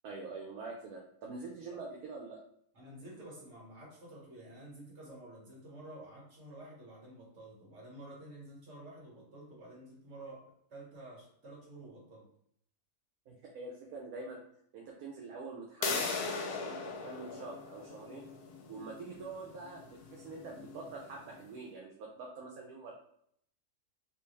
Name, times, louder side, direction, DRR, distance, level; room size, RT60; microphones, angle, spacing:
voice 1, 0.0-2.4 13.3-14.4 14.7-18.3 18.7-22.9, right 3 dB, 75° right, -1 dB, 1.1 m, -45 dB
voice 2, 2.7-12.3, right 1 dB, 50° right, -5 dB, 1.8 m, -50 dB
sound 1, 15.8-21.4, left 4 dB, 85° left, 1.2 m, -39 dB
3.3 x 2.8 x 3.2 m, 0.69 s
omnidirectional pair, 1.6 m